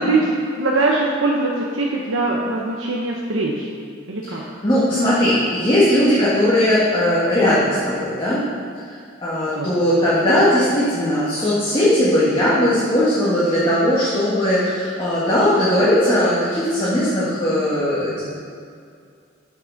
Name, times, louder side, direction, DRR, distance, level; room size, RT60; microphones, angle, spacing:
voice 1, 0.0-3.7 4.1-4.4 9.6-9.8, right 2 dB, 80° right, -2 dB, 0.9 m, -22 dB
voice 2, 4.6-8.4 9.2-18.2, left 1 dB, 25° left, -10 dB, 1.9 m, -18 dB
7.3 x 6.0 x 6.5 m, 2.3 s
head